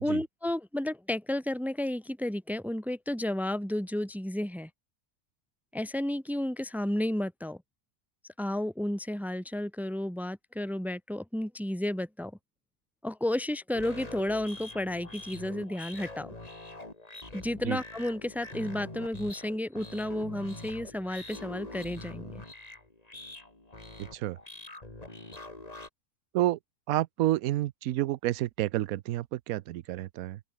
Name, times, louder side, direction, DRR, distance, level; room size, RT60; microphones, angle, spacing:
voice 1, 0.0-4.7 5.7-7.6 8.4-12.3 13.0-16.3 17.3-22.4, left 1 dB, ahead, 2.3 m, -32 dB
sound 1, 13.7-25.9, left 2 dB, 25° left, 3.0 m, -44 dB
voice 2, 26.9-30.4, right 15 dB, 70° right, 1.0 m, -29 dB
open air
omnidirectional pair, 1.7 m